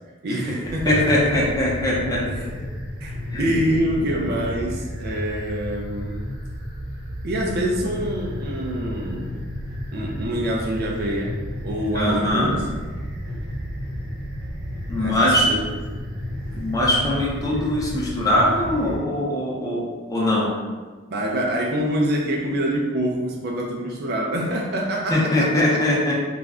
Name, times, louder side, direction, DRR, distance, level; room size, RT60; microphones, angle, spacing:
voice 1, 0.2-1.5 2.2-2.5 3.0-6.2 7.2-9.3 9.9-12.7 13.5-13.6 15.0-15.4 15.9-16.1 21.1-25.8, equal, 50° right, -1 dB, 0.4 m, -26 dB
sound 1, 0.6-19.0, equal, 70° right, 0.9 m, -32 dB
voice 2, 0.8-2.2 3.3-3.5 11.9-12.5 14.9-15.5 16.5-20.5 25.1-26.1, left 1 dB, 15° left, -5 dB, 0.5 m, -21 dB
2.4 x 2.1 x 3.5 m, 1.4 s
head